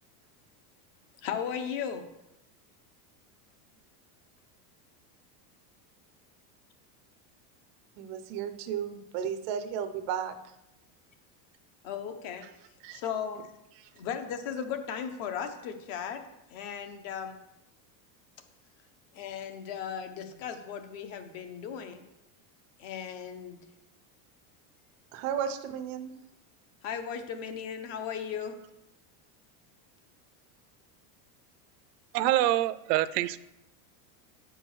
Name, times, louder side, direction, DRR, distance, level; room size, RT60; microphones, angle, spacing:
voice 1, 1.2-2.0 11.8-12.5 12.9-13.5 14.0-17.4 19.1-22.0 22.8-23.6 26.8-28.6, left 7 dB, 55° left, 8 dB, 1.1 m, -36 dB
voice 2, 8.0-10.3 12.8-13.0 13.8-13.9 25.1-26.1, right 8 dB, 30° right, 8 dB, 0.4 m, -34 dB
voice 3, 32.1-33.4, right 14 dB, 85° right, 15 dB, 0.6 m, -25 dB
9.1 x 4.5 x 6.1 m, 0.88 s
supercardioid pair, 175°, 47 cm